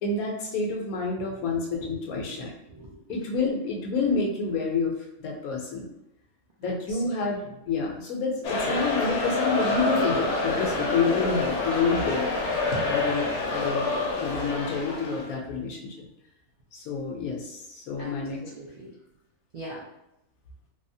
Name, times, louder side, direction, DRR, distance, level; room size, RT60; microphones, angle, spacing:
voice 1, 0.0-2.5 3.1-4.9 5.2-5.9 6.6-12.3 12.9-13.3 13.5-13.9 14.2-15.9 16.7-18.4, left 4 dB, 85° left, 0 dB, 1.1 m, -28 dB
voice 2, 2.2-3.2 6.6-7.0 18.0-18.1 18.4-18.9 19.5-19.8, right 1 dB, 85° right, -6 dB, 0.3 m, -43 dB
sound 1, 8.4-15.3, left 3 dB, 65° left, 0.9 m, -27 dB
3.4 x 2.0 x 2.6 m, 0.84 s
omnidirectional pair, 1.5 m